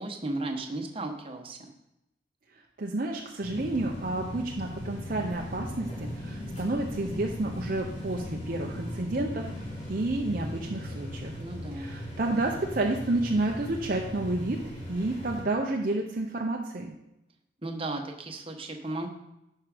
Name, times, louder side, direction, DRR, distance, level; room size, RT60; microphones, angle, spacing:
voice 1, 0.0-1.7 11.4-11.9 17.6-19.1, right 2 dB, 30° right, 3 dB, 1.1 m, -35 dB
voice 2, 2.8-11.4 11.7-16.9, right 2 dB, 50° right, 1 dB, 0.7 m, -30 dB
sound 1, 3.4-15.4, equal, 40° left, 2.8 m, -38 dB
11.0 x 4.8 x 5.0 m, 0.88 s
head